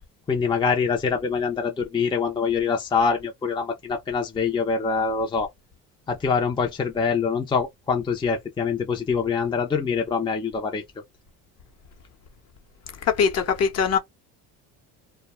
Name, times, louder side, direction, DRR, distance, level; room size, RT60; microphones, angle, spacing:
voice 1, 0.3-5.5 6.1-10.8, left 5 dB, 15° left, 0.5 m, -24 dB
voice 2, 13.0-14.0, left 6 dB, 45° left, 0.9 m, -21 dB
2.2 x 2.2 x 3.0 m
cardioid pair, 115°, 36 cm